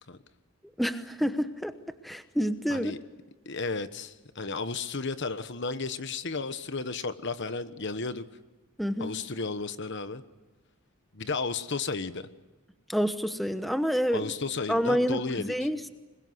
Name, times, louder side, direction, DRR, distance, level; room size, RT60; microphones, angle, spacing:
voice 1, 0.8-1.7 2.0-2.9 8.8-9.2 12.9-14.3 14.7-15.9, equal, ahead, 9 dB, 0.9 m, -28 dB
voice 2, 3.4-8.2 9.0-10.2 11.1-12.3 14.1-15.5, left 4 dB, 55° left, 11 dB, 1.2 m, -33 dB
25.5 x 22.0 x 8.0 m, 1.2 s
head